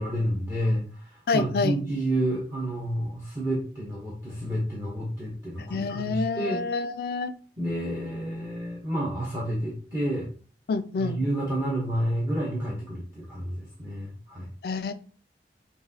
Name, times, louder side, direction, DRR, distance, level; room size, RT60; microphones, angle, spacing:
voice 1, 0.0-6.6 7.6-10.3 11.0-14.5, right 1 dB, 20° right, 0.9 m, -30 dB
voice 2, 1.3-1.8 5.7-7.3 10.7-11.2 14.6-14.9, left 4 dB, 60° left, 0.3 m, -27 dB
5.8 x 2.6 x 2.7 m
head